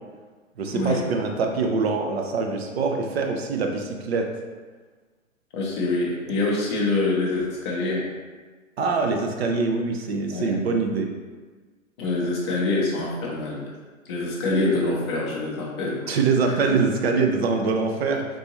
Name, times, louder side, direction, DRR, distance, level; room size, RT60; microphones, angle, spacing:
voice 1, 0.6-4.3 8.8-11.1 16.1-18.3, right 4 dB, 50° right, 3 dB, 0.5 m, -24 dB
voice 2, 5.5-8.1 10.3-10.5 12.0-13.7 14.1-16.2 16.4-16.5, left 2 dB, 20° left, -4 dB, 0.5 m, -25 dB
3.7 x 2.5 x 2.9 m, 1.4 s
figure-of-eight pair, 125°, 41 cm